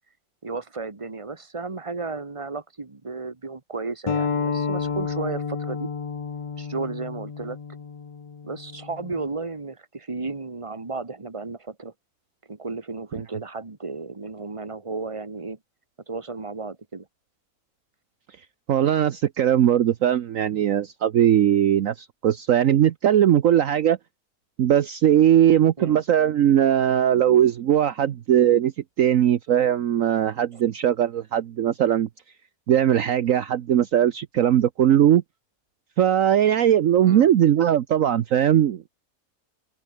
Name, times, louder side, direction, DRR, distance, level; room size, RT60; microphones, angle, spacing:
voice 1, 0.4-5.9 6.6-7.6 8.4-11.9 12.5-15.6 16.1-17.1 25.8-26.0 30.5-30.6 37.0-37.3, right 3 dB, 20° right, 1.7 m, -33 dB
sound 1, 4.1-9.3, left 5 dB, 45° left, 0.4 m, -30 dB
voice 2, 18.7-24.0 24.6-28.7 29.0-32.1 32.7-35.2 36.0-38.9, right 10 dB, 65° right, 1.2 m, -19 dB
omnidirectional pair, 1.6 m